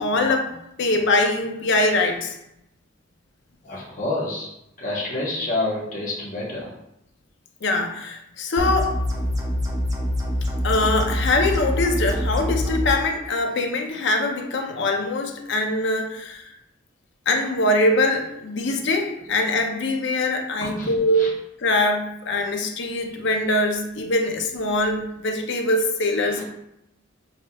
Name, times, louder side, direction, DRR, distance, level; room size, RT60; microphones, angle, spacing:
voice 1, 0.0-2.4 7.6-9.0 10.6-16.5 17.3-21.3 21.6-26.4, left 2 dB, 60° left, 4 dB, 0.6 m, -23 dB
voice 2, 3.6-4.5 4.8-6.7 20.6-20.9 21.2-21.3 26.2-26.4, left 2 dB, 40° left, -5 dB, 1.3 m, -28 dB
sound 1, 8.6-13.0, equal, 20° right, 0.6 m, -25 dB
6.5 x 2.8 x 2.3 m, 0.82 s
head